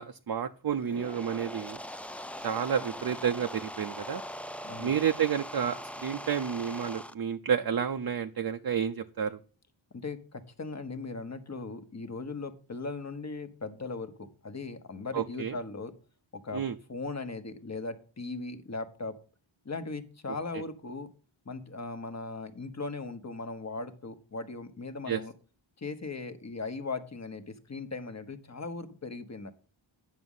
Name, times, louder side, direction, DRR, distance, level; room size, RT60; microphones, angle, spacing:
voice 1, 0.0-1.8 2.4-4.2 4.8-9.4 15.1-15.6 16.5-16.8 20.5-20.6 25.1-25.2, right 8 dB, 50° right, 6 dB, 0.6 m, -30 dB
sound 1, 0.7-7.1, equal, 5° left, 0.4 m, -41 dB
voice 2, 9.9-15.9 16.3-16.6 16.9-19.1 19.6-21.1 21.5-25.3 25.8-29.5, left 3 dB, 35° left, 9 dB, 1.1 m, -38 dB
9.5 x 6.2 x 5.5 m, 0.38 s
wide cardioid pair, 110°, 47 cm